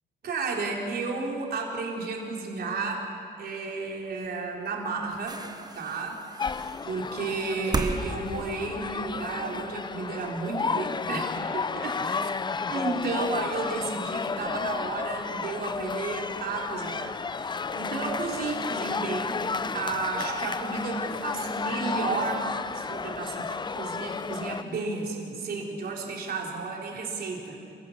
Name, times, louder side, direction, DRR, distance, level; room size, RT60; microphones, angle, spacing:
voice 1, 0.2-3.1 3.4-5.4 5.7-6.2 6.9-12.2 12.7-19.5 19.7-27.6, right 3 dB, 55° right, -1 dB, 4.0 m, -32 dB
sound 1, 4.2-4.3 5.0-9.3 10.3-10.4, right 2 dB, 20° right, 1.3 m, -35 dB
sound 2, 6.4-24.6, left 5 dB, 25° left, 0.6 m, -32 dB
27.5 x 16.5 x 7.3 m, 2.6 s
cardioid pair, 115°, 19 cm